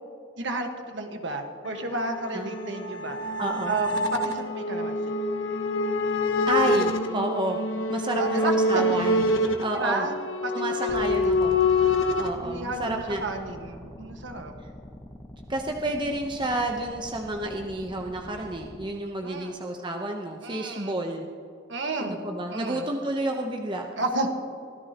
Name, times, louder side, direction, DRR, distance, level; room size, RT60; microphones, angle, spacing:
voice 1, 0.4-3.4 3.7-5.0 8.1-8.8 9.7-10.1 10.4-11.3 12.4-14.5 19.2-19.6 20.4-21.0 21.7-22.2 22.5-22.9 24.0-24.3, right 2 dB, 60° right, 4 dB, 1.5 m, -32 dB
sound 1, 1.7-12.3, left 2 dB, 70° left, 1.1 m, -26 dB
voice 2, 3.4-3.7 6.5-7.6 7.9-10.0 10.5-11.6 12.2-13.2 15.5-21.3 22.0-23.9, right 2 dB, 25° right, 2 dB, 0.9 m, -30 dB
sound 2, 10.9-18.9, left 1 dB, 20° left, 1.0 m, -44 dB
24.0 x 15.0 x 2.9 m, 2.4 s
head